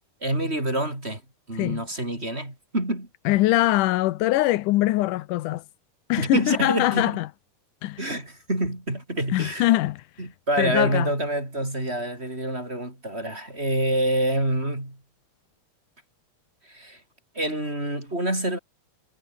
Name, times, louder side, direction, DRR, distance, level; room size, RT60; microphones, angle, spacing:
voice 1, 0.2-1.2 1.5-3.1 6.2-7.2 8.0-9.7 10.2-15.0 16.7-17.0 17.4-18.6, right 1 dB, 20° right, 7.2 m, -27 dB
voice 2, 3.3-5.6 6.1-7.3 7.8-8.0 9.3-10.0 10.6-11.1, left 17 dB, 85° left, 2.3 m, -22 dB
omnidirectional pair, 3.6 m